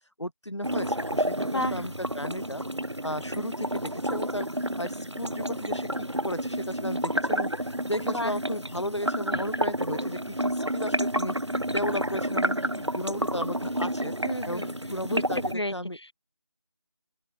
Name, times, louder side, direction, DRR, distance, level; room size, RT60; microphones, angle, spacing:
voice 1, 0.2-2.6 3.0-11.3 11.7-14.2 14.5-16.0, equal, 90° left, 6.2 m, -35 dB
sound 1, 0.6-15.5, right 1 dB, 85° right, 4.5 m, -30 dB
voice 2, 1.4-1.8 8.1-8.3 14.2-14.7 15.0-15.2 15.5-16.1, left 1 dB, 70° left, 4.3 m, -32 dB
open air
figure-of-eight pair, 170°, 14 cm